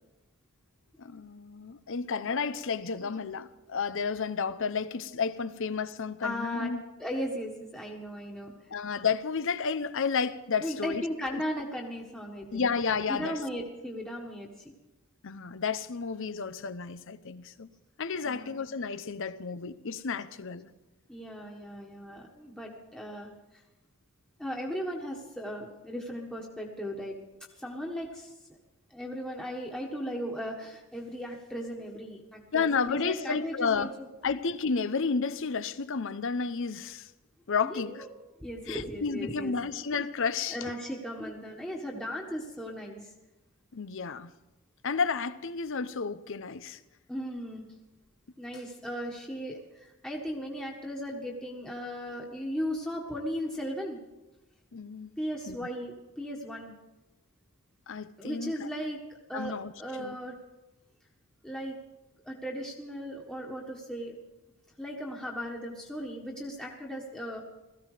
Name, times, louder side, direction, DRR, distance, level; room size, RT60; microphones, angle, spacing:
voice 1, 1.0-6.8 8.7-11.0 11.3-11.4 12.5-13.4 15.2-17.7 18.0-20.7 32.5-33.9 34.2-37.1 37.5-38.1 38.7-40.6 43.7-44.3 44.8-46.8 54.7-55.1 55.5-55.6 57.9-58.7 59.3-59.7 60.0-60.2, left 5 dB, 65° left, 0.7 m, -31 dB
voice 2, 6.2-6.7 7.0-8.5 10.6-12.7 13.1-14.5 18.2-18.6 21.1-23.3 24.4-27.2 27.6-28.3 28.9-34.1 37.6-38.1 38.4-39.5 39.9-40.0 40.5-43.1 47.1-47.6 48.4-54.0 55.2-56.7 58.2-59.0 59.3-60.3 61.4-61.7 62.2-64.1 64.8-67.4, equal, 5° left, 1.6 m, -37 dB
17.5 x 14.5 x 5.0 m
head